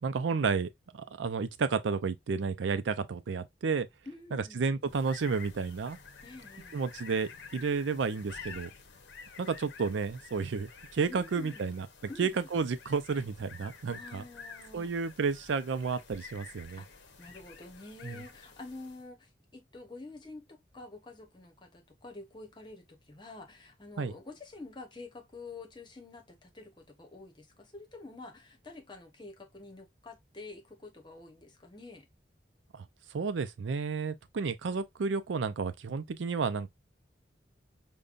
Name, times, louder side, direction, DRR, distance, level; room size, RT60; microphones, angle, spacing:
voice 1, 0.0-3.9 4.3-6.0 6.7-8.7 9.4-11.9 12.2-14.2 14.7-16.8 18.0-18.2 24.0-24.1 32.7-32.8 33.1-36.7, right 5 dB, 85° right, 0.4 m, -31 dB
voice 2, 4.0-4.8 6.2-6.8 11.1-12.5 13.9-14.9 16.8-32.1, left 3 dB, 25° left, 0.9 m, -48 dB
sound 1, 4.8-19.1, left 5 dB, 75° left, 0.7 m, -50 dB
5.2 x 2.2 x 2.4 m
head